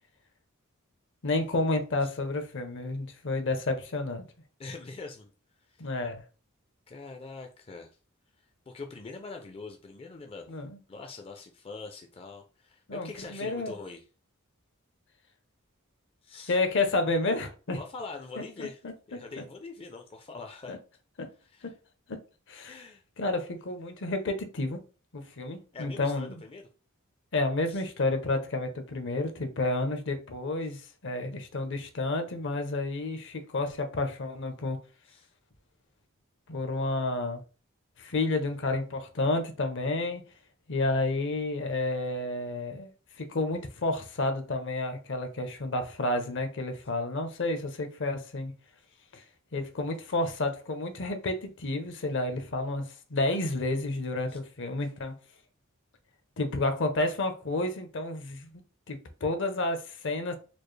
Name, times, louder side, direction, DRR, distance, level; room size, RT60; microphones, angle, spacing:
voice 1, 1.2-4.3 5.8-6.2 10.5-10.8 12.9-13.7 16.5-17.8 18.6-18.7 20.7-20.8 22.5-22.8 23.2-24.8 25.1-26.4 27.3-34.8 36.5-37.4 38.0-40.2 40.7-42.9 43.2-48.5 49.1-49.2 49.5-52.8 53.1-55.1 56.4-58.6 58.9-60.4, left 2 dB, 60° left, 0.7 m, -30 dB
voice 2, 4.6-5.3 5.6-5.9 6.9-7.9 8.7-10.5 10.9-14.0 16.2-16.6 17.8-18.8 19.1-20.8 21.4-21.7 22.7-23.0 25.7-26.6 27.7-27.8 30.6-30.8 35.1-35.3 49.5-49.9 54.3-54.4, left 3 dB, 25° left, 0.4 m, -43 dB
4.3 x 2.4 x 3.2 m
head